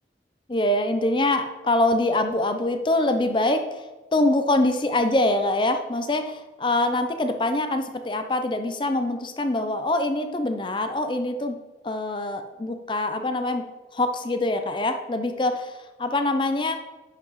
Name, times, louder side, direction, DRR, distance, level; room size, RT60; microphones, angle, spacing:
voice 1, 0.5-3.8 4.1-13.7 13.9-15.7 16.0-16.8, left 2 dB, 25° left, 7 dB, 0.5 m, -24 dB
10.5 x 5.8 x 3.1 m, 1.2 s
head